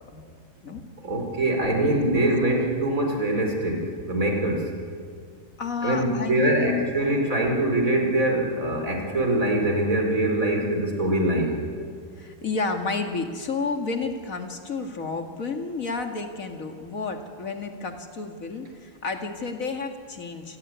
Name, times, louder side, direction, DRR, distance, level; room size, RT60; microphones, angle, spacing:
voice 1, 1.0-4.7 5.8-11.6, right 1 dB, 85° right, 2 dB, 4.9 m, -23 dB
voice 2, 1.9-2.3 5.6-6.9 12.2-20.6, left 4 dB, 80° left, 5 dB, 2.5 m, -31 dB
29.0 x 17.0 x 9.5 m, 2.2 s
omnidirectional pair, 1.4 m